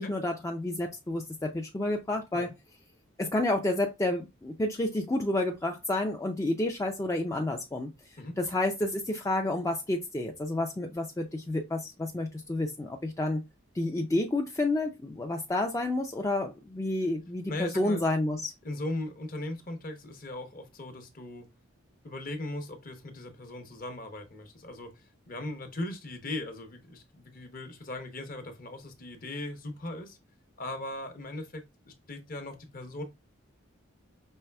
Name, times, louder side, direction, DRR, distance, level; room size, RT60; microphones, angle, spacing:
voice 1, 0.0-2.5 3.2-7.9 8.4-13.4 13.7-18.5, left 2 dB, 15° left, 0.4 m, -30 dB
voice 2, 17.5-18.0 18.6-21.5 22.0-30.2 30.6-33.0, left 1 dB, 40° left, 0.8 m, -39 dB
5.5 x 3.2 x 2.2 m
head